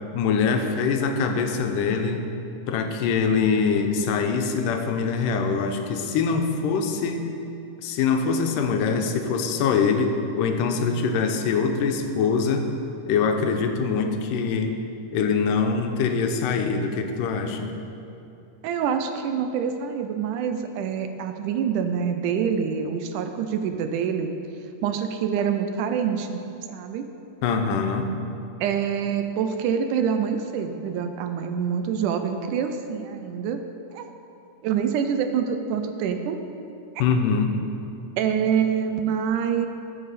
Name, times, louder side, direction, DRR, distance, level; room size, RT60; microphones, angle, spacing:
voice 1, 0.1-2.3 2.7-7.3 7.8-12.7 13.1-14.7 15.1-17.8 27.4-28.1 37.0-37.6, left 5 dB, 90° left, 5 dB, 2.3 m, -23 dB
voice 2, 18.6-24.3 24.8-26.4 26.7-27.1 28.6-33.6 33.9-34.1 34.6-36.4 37.0-37.1 38.2-39.7, right 7 dB, 80° right, 7 dB, 2.0 m, -26 dB
14.0 x 6.7 x 4.1 m, 2.7 s
omnidirectional pair, 3.8 m